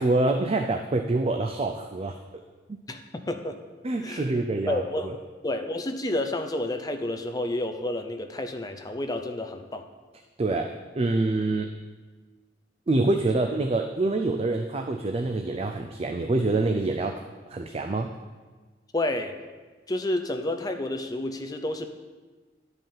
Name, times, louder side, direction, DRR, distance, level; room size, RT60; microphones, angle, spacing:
voice 1, 0.0-2.2 2.7-2.8 3.8-4.8 10.4-11.7 12.9-17.2 17.5-18.1, right 2 dB, 30° right, 4 dB, 0.4 m, -26 dB
voice 2, 2.9-3.6 4.0-4.2 4.7-5.1 5.4-9.8 18.9-19.3 19.9-21.9, left 1 dB, 20° left, 6 dB, 0.6 m, -30 dB
10.5 x 5.4 x 5.6 m, 1.4 s
head